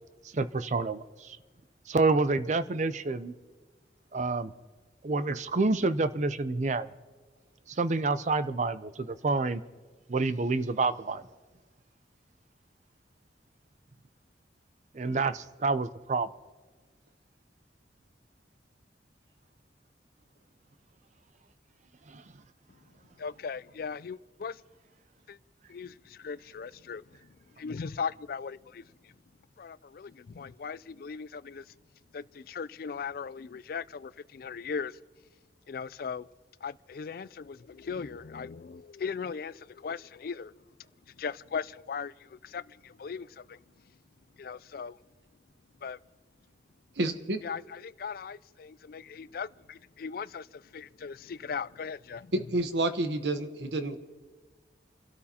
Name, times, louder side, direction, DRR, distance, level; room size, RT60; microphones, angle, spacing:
voice 1, 0.3-1.4 1.9-3.3 4.1-4.5 5.0-6.9 7.8-9.6 10.1-11.2 14.9-16.3 22.1-22.2, right 3 dB, 40° right, 0.5 m, -28 dB
voice 2, 23.2-24.6 25.3-25.4 25.7-29.1 29.6-31.7 32.1-35.0 35.7-36.3 36.6-40.5 41.1-43.6 44.4-45.0 45.8-46.0 47.4-52.3, left 6 dB, 55° left, 0.4 m, -38 dB
voice 3, 47.0-47.4 52.3-54.0, right 2 dB, 75° right, 1.0 m, -29 dB
29.5 x 12.5 x 2.9 m
head